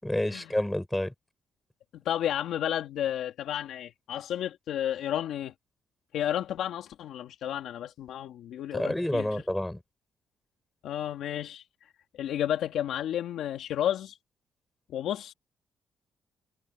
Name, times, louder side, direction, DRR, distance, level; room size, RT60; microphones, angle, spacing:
voice 1, 0.0-1.1 8.7-9.8, left 1 dB, 5° left, 7.1 m, -29 dB
voice 2, 2.0-5.5 6.1-9.4 10.8-11.9 12.2-14.2 14.9-15.3, left 11 dB, 85° left, 2.7 m, -32 dB
cardioid pair, 170°, 0 cm